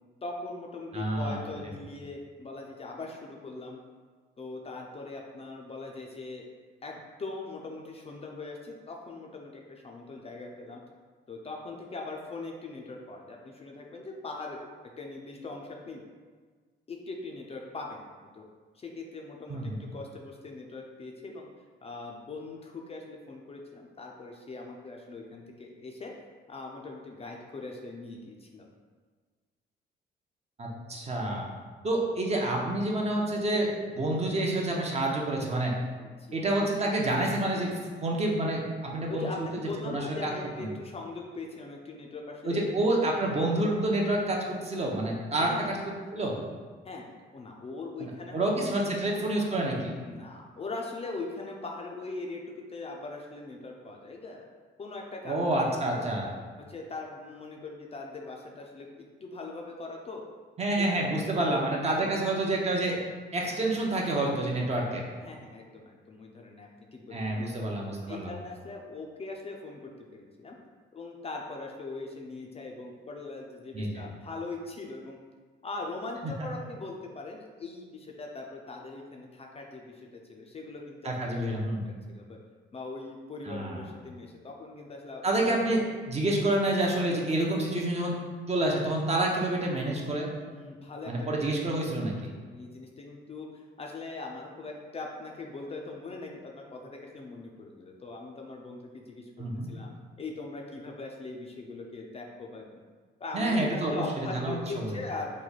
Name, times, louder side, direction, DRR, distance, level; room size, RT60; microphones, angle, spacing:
voice 1, 0.2-3.8 4.4-6.4 6.8-10.8 11.3-14.6 15.0-16.0 16.9-18.1 18.3-18.4 18.7-21.5 21.8-26.1 26.5-28.7 36.0-36.5 39.1-42.6 45.4-45.8 46.8-47.0 47.3-48.7 50.0-54.5 54.8-56.3 56.7-58.9 59.2-60.2 60.8-61.1 61.4-62.1 64.6-64.8 65.2-67.6 68.1-70.6 70.9-75.2 75.6-82.4 82.7-85.6 90.5-91.1 91.8-99.3 99.7-99.9 100.2-102.6 103.2-105.3, left 3 dB, 30° left, 0 dB, 0.4 m, -41 dB
voice 2, 0.9-1.4 19.5-19.8 30.6-31.5 31.8-35.7 36.3-37.7 38.0-39.5 39.8-40.3 40.6-40.7 42.4-45.8 46.1-46.4 48.0-49.9 55.2-56.3 60.6-63.0 63.3-65.0 67.1-68.3 73.7-74.0 81.0-81.9 83.5-83.8 85.2-85.8 86.1-88.1 88.5-90.3 91.1-92.3 99.4-99.7 103.3-104.0 104.3-105.0, right 1 dB, 30° right, -1 dB, 0.6 m, -28 dB
3.1 x 2.2 x 3.9 m, 1.5 s
cardioid pair, 90°, 20 cm